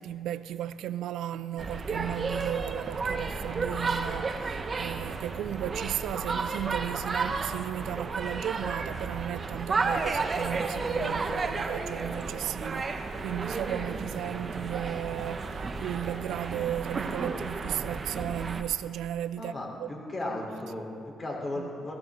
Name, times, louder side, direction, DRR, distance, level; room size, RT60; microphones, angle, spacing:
voice 1, 0.0-19.5 19.8-19.9 21.6-21.7, right 11 dB, 85° right, 0.4 m, -35 dB
sound 1, 1.6-18.6, right 4 dB, 40° right, 1.0 m, -32 dB
voice 2, 19.4-21.9, left 1 dB, 30° left, 4.0 m, -35 dB
16.5 x 15.5 x 3.9 m
cardioid pair, 90°, 0 cm